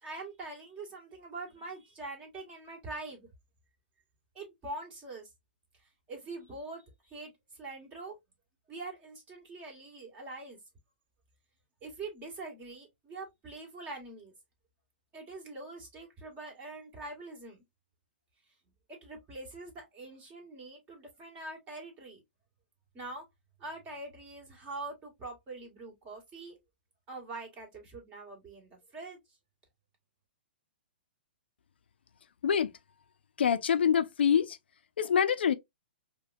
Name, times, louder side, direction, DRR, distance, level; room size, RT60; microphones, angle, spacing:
voice 1, 0.0-3.3 4.3-5.3 6.1-7.3 7.6-8.2 8.7-10.6 11.8-14.3 15.1-17.6 18.9-22.2 22.9-23.2 23.6-26.6 27.1-29.2, right 2 dB, 25° right, 1.9 m, -44 dB
voice 2, 33.4-34.6 35.0-35.5, left 8 dB, 75° left, 0.5 m, -25 dB
4.9 x 2.2 x 2.6 m
hypercardioid pair, 130°, 6 cm